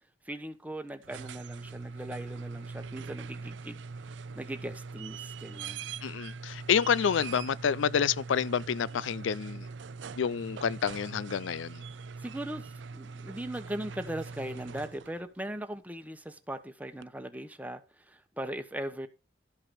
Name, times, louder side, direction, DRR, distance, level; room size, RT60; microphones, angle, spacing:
voice 1, 0.2-3.8 4.3-5.9 11.9-19.1, right 1 dB, 10° right, 1.1 m, -39 dB
sound 1, 0.9-15.3 17.0-17.1, right 4 dB, 70° right, 0.5 m, -42 dB
voice 2, 6.0-9.7 10.2-11.8, left 7 dB, 85° left, 0.4 m, -28 dB
13.0 x 5.8 x 5.9 m
head